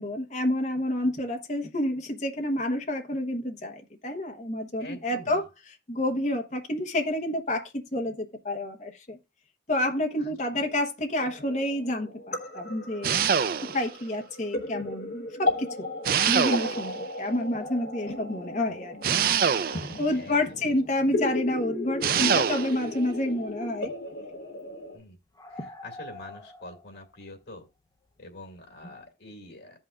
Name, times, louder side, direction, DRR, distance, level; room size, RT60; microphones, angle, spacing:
voice 1, 0.0-5.4 5.9-9.2 9.7-13.2 13.7-15.9 16.3-19.0 20.0-23.9, left 1 dB, 40° left, 1.0 m, -29 dB
voice 2, 4.8-5.4 10.2-10.7 14.8-14.9 18.7-18.8 19.6-20.8 21.1-21.2 22.0-22.9 24.9-25.2 25.5-27.7 28.2-29.8, left 1 dB, 80° left, 2.1 m, -46 dB
sound 1, 11.2-25.0, left 2 dB, 60° left, 1.2 m, -35 dB
sound 2, 13.0-13.9 16.1-17.0 19.0-20.1 22.0-22.8, right 7 dB, 50° right, 0.4 m, -25 dB
sound 3, 17.5-19.2 19.5-19.6 20.1-20.2 20.9-21.0 22.1-23.1 23.4-23.8 24.1-24.2 24.6-24.7 24.9-25.0 25.3-28.4 28.7-29.0, left 2 dB, 20° left, 0.8 m, -47 dB
14.5 x 5.5 x 2.4 m
head